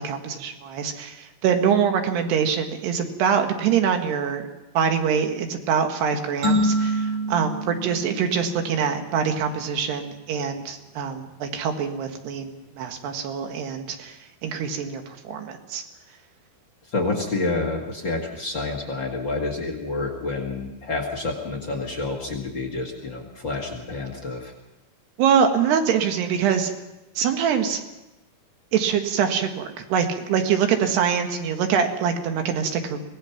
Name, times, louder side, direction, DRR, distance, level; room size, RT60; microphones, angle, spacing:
voice 1, 0.0-4.4 4.8-15.8 25.2-26.7 27.2-27.8 28.7-33.0, right 7 dB, 90° right, 5 dB, 3.8 m, -24 dB
sound 1, 6.4-9.1, equal, 40° right, 7.7 m, -26 dB
voice 2, 16.9-24.5, left 3 dB, 40° left, 3 dB, 2.0 m, -28 dB
24.0 x 18.5 x 5.9 m, 0.97 s
omnidirectional pair, 4.6 m